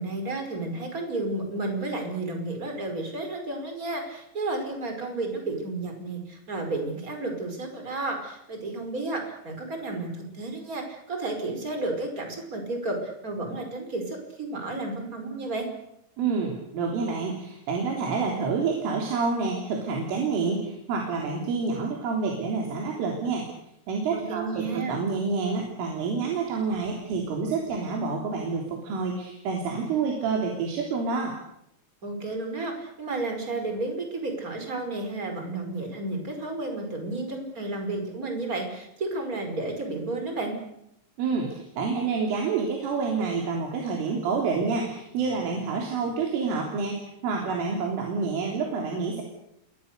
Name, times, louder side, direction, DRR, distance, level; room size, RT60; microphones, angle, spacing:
voice 1, 0.0-15.7 24.1-25.0 32.0-40.6, right 2 dB, 15° right, 4 dB, 5.1 m, -32 dB
voice 2, 16.2-23.5 23.9-31.3 41.2-49.2, right 4 dB, 80° right, 0 dB, 6.0 m, -28 dB
28.5 x 23.5 x 6.8 m, 0.80 s
omnidirectional pair, 5.6 m